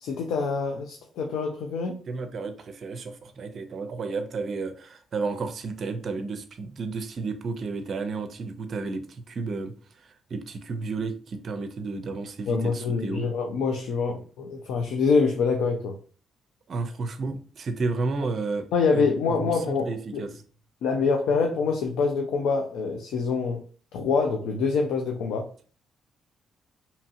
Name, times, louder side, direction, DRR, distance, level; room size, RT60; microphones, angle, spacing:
voice 1, 0.0-2.0 12.5-15.9 18.7-20.3 20.8-23.6 23.9-25.5, left 5 dB, 85° left, 0.4 m, -25 dB
voice 2, 2.1-13.3 16.7-20.3, right 3 dB, 50° right, 0.5 m, -32 dB
2.8 x 2.7 x 2.5 m
cardioid pair, 90°, 0 cm